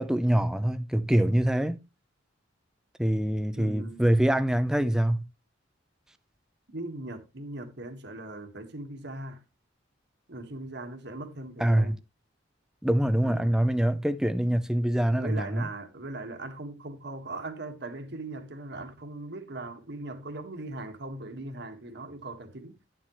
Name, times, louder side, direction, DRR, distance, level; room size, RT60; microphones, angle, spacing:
voice 1, 0.0-1.8 3.0-5.2 11.6-12.0 12.8-15.7, right 1 dB, 5° right, 0.5 m, -24 dB
voice 2, 3.6-4.0 6.7-9.4 10.3-12.0 13.2-13.6 15.1-22.7, right 2 dB, 60° right, 1.6 m, -39 dB
11.0 x 7.4 x 3.1 m
head